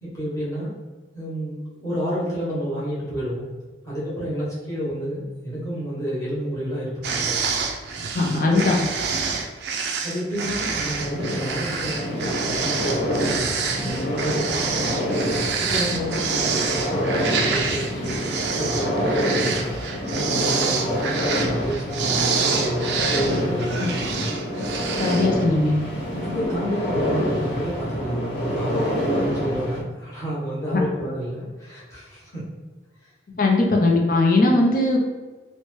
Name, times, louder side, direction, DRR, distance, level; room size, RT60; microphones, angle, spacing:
voice 1, 0.0-0.7 1.1-3.5 3.8-7.4 8.4-8.7 10.0-18.1 18.5-19.6 20.1-24.4 26.2-32.5, equal, 20° left, -8 dB, 1.0 m, -30 dB
sound 1, 7.0-25.4, right 5 dB, 70° right, 0.3 m, -27 dB
voice 2, 8.1-8.8 25.0-25.7 30.7-30.8 33.4-35.0, left 2 dB, 50° left, 0 dB, 0.5 m, -19 dB
sound 2, 10.9-29.8, equal, 80° left, 1.0 m, -27 dB
2.8 x 2.1 x 3.1 m, 1.3 s
head